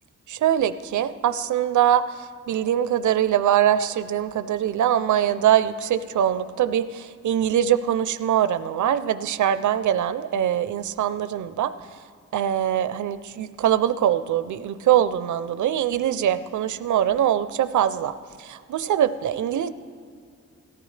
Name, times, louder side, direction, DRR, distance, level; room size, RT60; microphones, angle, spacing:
voice 1, 0.3-11.7 12.3-19.7, right 10 dB, 80° right, 12 dB, 0.5 m, -23 dB
18.0 x 14.0 x 3.2 m, 2.3 s
wide cardioid pair, 135°, 29 cm